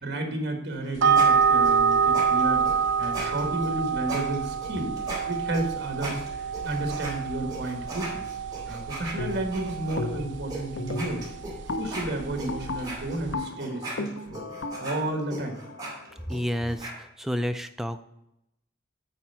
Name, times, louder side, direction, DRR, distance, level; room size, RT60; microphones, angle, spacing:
voice 1, 0.0-4.9 5.3-6.2 6.6-8.2 8.7-11.2 11.8-14.4 14.8-15.6, right 1 dB, 60° right, 3 dB, 1.6 m, -32 dB
sound 1, 0.7-7.1 7.5-10.0 10.5-10.6 10.9-16.9, right 2 dB, 20° right, 2.4 m, -38 dB
sound 2, 1.0-13.3, right 6 dB, 75° right, 0.5 m, -27 dB
sound 3, 9.2-9.6 10.0-10.4 10.8-16.6, left 2 dB, 85° left, 0.7 m, -36 dB
voice 2, 16.3-16.9 17.2-18.0, equal, ahead, 8 dB, 0.4 m, -29 dB
8.9 x 4.2 x 5.7 m, 0.84 s
head